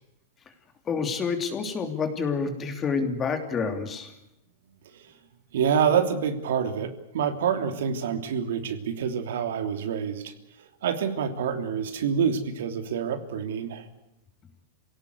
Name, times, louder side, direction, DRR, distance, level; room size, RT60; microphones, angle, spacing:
voice 1, 0.9-4.1, left 5 dB, 20° left, 6 dB, 3.0 m, -28 dB
voice 2, 5.5-10.3 10.8-13.8, right 7 dB, 80° right, 7 dB, 3.1 m, -27 dB
27.0 x 17.5 x 8.2 m, 0.90 s
supercardioid pair, 160°, 0 cm